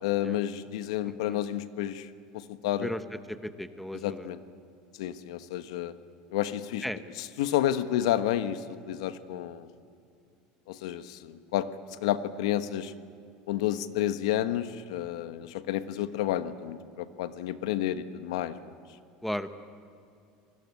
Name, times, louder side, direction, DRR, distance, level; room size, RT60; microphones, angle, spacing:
voice 1, 0.0-2.9 4.0-4.4 5.0-5.9 6.3-6.8 7.4-9.7 10.7-12.9 13.5-18.7, left 12 dB, 90° left, 11 dB, 1.3 m, -30 dB
voice 2, 1.0-1.4 2.8-3.0 3.3-4.3 6.8-7.0 19.2-19.5, left 1 dB, ahead, 11 dB, 0.8 m, -35 dB
27.5 x 20.5 x 9.6 m, 2.6 s
cardioid pair, 160°, 3 cm